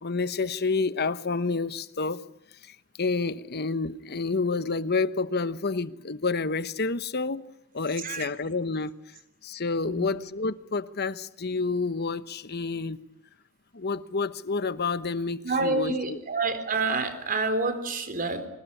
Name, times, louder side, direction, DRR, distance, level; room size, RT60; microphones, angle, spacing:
voice 1, 0.0-2.2 2.6-7.5 7.7-8.9 9.4-13.0 13.7-16.2, left 4 dB, 50° left, 1.1 m, -29 dB
voice 2, 8.0-8.3 9.8-10.1 15.4-18.5, right 3 dB, 40° right, 3.9 m, -28 dB
25.0 x 20.0 x 9.9 m
head